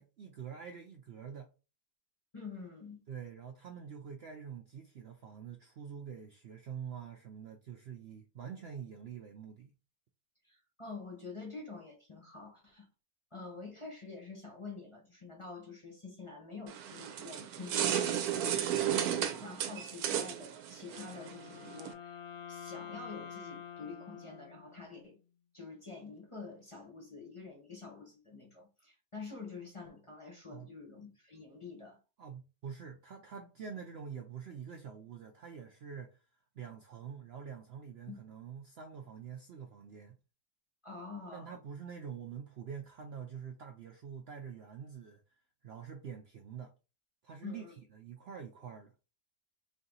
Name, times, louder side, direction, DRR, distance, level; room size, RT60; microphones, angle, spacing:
voice 1, 0.0-1.5 3.1-9.7 30.5-30.7 32.2-36.2 36.5-40.2 41.3-45.2 45.6-46.7 47.2-48.9, right 7 dB, 65° right, 0.6 m, -46 dB
voice 2, 2.3-3.0 10.4-12.9 13.3-22.2 22.5-25.2 25.5-32.0 38.1-38.2 40.8-41.6 47.4-47.7, left 4 dB, 25° left, 0.8 m, -47 dB
sound 1, 16.7-21.9, right 10 dB, 90° right, 1.1 m, -34 dB
Wind instrument woodwind instrument, 20.9-25.1, left 8 dB, 60° left, 1.0 m, -48 dB
3.3 x 2.7 x 3.9 m
omnidirectional pair, 1.6 m